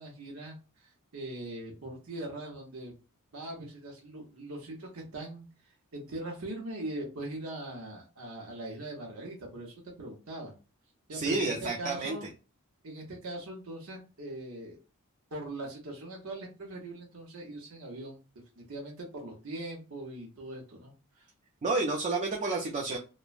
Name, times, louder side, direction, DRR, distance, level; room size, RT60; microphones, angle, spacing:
voice 1, 0.0-2.9 3.3-10.5 11.1-12.3 12.8-14.8 15.3-18.2 18.6-21.2, right 1 dB, 70° right, -1 dB, 0.8 m, -41 dB
voice 2, 11.1-12.2 21.6-23.0, right 3 dB, 35° right, 0 dB, 0.4 m, -30 dB
3.0 x 2.1 x 2.4 m, 0.32 s
head